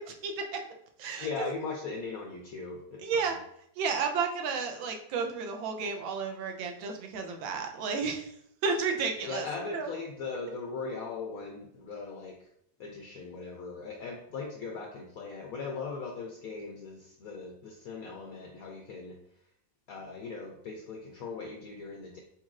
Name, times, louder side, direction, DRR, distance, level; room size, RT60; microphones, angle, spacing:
voice 1, 0.2-0.6 1.0-1.3 3.0-3.4 3.8-8.3 8.6-9.5 9.7-9.9, right 5 dB, 85° right, 3 dB, 1.4 m, -32 dB
voice 2, 1.2-3.4 9.2-12.5 12.8-19.2 19.9-22.2, left 4 dB, 80° left, 1 dB, 0.8 m, -39 dB
4.5 x 4.2 x 2.4 m, 0.71 s
omnidirectional pair, 2.1 m